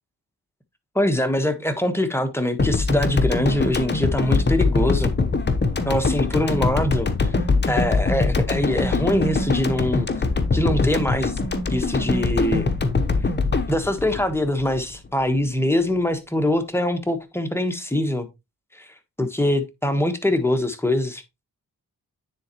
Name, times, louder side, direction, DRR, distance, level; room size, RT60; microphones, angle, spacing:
voice 1, 0.9-5.1 5.9-7.3 7.7-10.1 10.5-11.3 11.7-12.7 13.7-18.3 18.7-18.9 19.2-21.2, left 1 dB, 5° left, 1.3 m, -23 dB
sound 1, 2.6-15.1, left 3 dB, 30° left, 1.0 m, -22 dB
9.6 x 4.0 x 3.0 m
cardioid pair, 65°, 37 cm